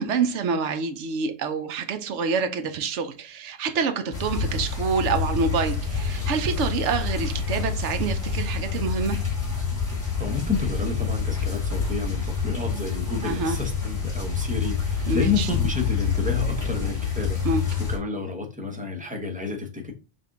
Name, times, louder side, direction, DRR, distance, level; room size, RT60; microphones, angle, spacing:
voice 1, 0.0-9.2 13.2-13.6 15.1-15.5 17.4-17.6, right 5 dB, 70° right, 1.0 m, -27 dB
sound 1, 4.1-18.0, left 5 dB, 25° left, 2.7 m, -27 dB
voice 2, 10.2-17.4 17.9-19.9, left 4 dB, 5° right, 0.8 m, -30 dB
5.1 x 2.6 x 3.7 m
omnidirectional pair, 1.3 m